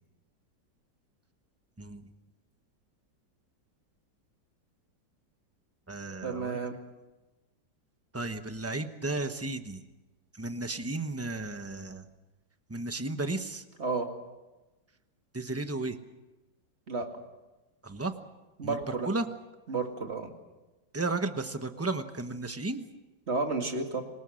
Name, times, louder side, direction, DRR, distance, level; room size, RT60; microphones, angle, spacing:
voice 1, 1.8-2.1 5.9-6.6 8.1-9.8 10.4-12.1 12.7-13.6 15.3-16.0 17.8-18.1 18.6-18.8 19.1-19.3 20.9-22.8, right 2 dB, 10° right, 8 dB, 0.8 m, -34 dB
voice 2, 6.2-6.8 13.8-14.1 16.9-17.1 18.6-19.1 19.7-20.3 23.3-24.0, right 3 dB, 35° right, 4 dB, 2.4 m, -31 dB
26.5 x 20.0 x 6.4 m, 1.1 s
omnidirectional pair, 2.0 m